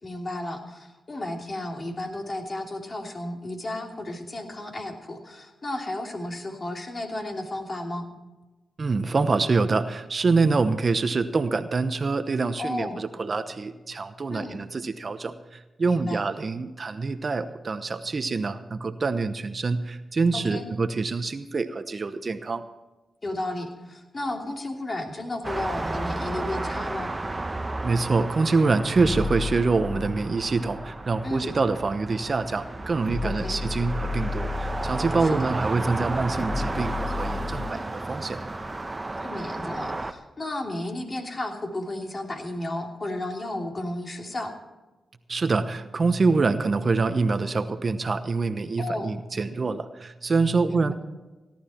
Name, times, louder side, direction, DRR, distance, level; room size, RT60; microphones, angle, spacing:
voice 1, 0.0-8.1 12.6-13.0 14.3-14.6 15.8-16.2 20.3-20.7 23.2-27.1 31.2-31.5 33.2-33.6 35.2-35.5 37.5-37.8 39.2-44.5 48.8-49.1 50.7-50.9, left 1 dB, 40° left, 2 dB, 3.0 m, -33 dB
voice 2, 8.8-22.6 27.8-38.4 45.3-50.9, right 4 dB, 50° right, 11 dB, 0.9 m, -25 dB
sound 1, 25.4-40.1, right 2 dB, 25° right, 1.0 m, -33 dB
sound 2, 28.8-31.6 32.3-32.4 32.8-37.7, left 3 dB, 20° left, 1.2 m, -34 dB
17.0 x 12.0 x 4.4 m, 1.1 s
supercardioid pair, 45°, 0 cm